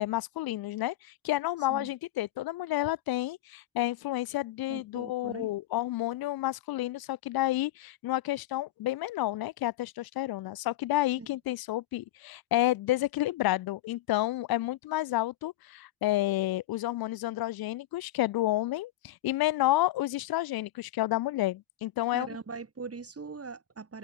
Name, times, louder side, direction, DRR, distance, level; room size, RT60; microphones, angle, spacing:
voice 1, 0.0-22.3, left 16 dB, 85° left, 0.6 m, -30 dB
voice 2, 4.7-5.5 11.2-11.3 22.1-24.0, right 4 dB, 40° right, 5.5 m, -41 dB
supercardioid pair, 55°, 35 cm